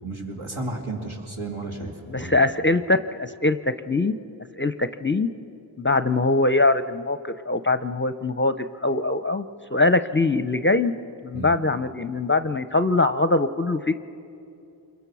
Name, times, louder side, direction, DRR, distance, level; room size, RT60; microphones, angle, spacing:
voice 1, 0.0-2.4 11.3-11.5, right 2 dB, 80° right, -1 dB, 3.3 m, -33 dB
voice 2, 2.1-3.6 3.9-4.1 4.5-5.3 5.8-9.5 9.7-10.9 11.2-13.9, left 2 dB, 25° left, 11 dB, 0.5 m, -22 dB
26.5 x 22.5 x 6.2 m, 2.7 s
wide cardioid pair, 45°, 49 cm